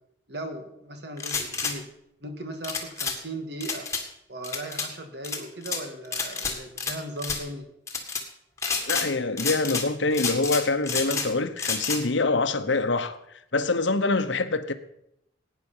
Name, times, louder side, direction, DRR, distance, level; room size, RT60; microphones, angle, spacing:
voice 1, 0.3-1.9 2.2-3.9 4.3-7.7, right 1 dB, 60° right, 1.9 m, -37 dB
sound 1, 1.2-1.7 2.6-3.2 3.6-4.0 4.4-4.9 5.2-5.8 6.1-6.9 7.2-7.4 7.9-8.2 8.6-9.1 9.4-9.9 10.1-11.3 11.6-12.0, left 5 dB, 15° left, 1.7 m, -29 dB
voice 2, 8.9-13.2 13.5-14.7, left 3 dB, 80° left, 1.0 m, -25 dB
16.5 x 9.3 x 5.6 m
head